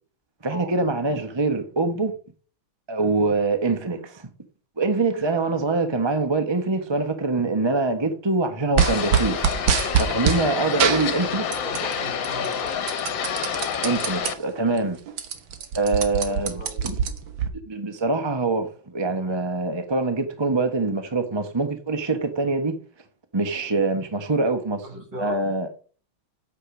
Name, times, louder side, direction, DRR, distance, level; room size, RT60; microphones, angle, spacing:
voice 1, 0.4-2.2 2.9-4.3 4.8-9.5 10.0-11.4 13.8-15.0 15.8-16.9 17.7-22.8 23.3-24.8 25.2-25.7, right 3 dB, 20° right, 0.7 m, -24 dB
sound 1, 8.8-14.3, left 7 dB, 70° left, 1.8 m, -28 dB
sound 2, 8.8-10.4 10.8-11.9 12.2-14.3 14.7-14.8 15.1-17.5, right 7 dB, 70° right, 1.9 m, -24 dB
voice 2, 11.6-12.8 16.3-16.9 24.8-25.4, equal, 50° right, 6.7 m, -38 dB
8.5 x 7.5 x 6.1 m
omnidirectional pair, 2.2 m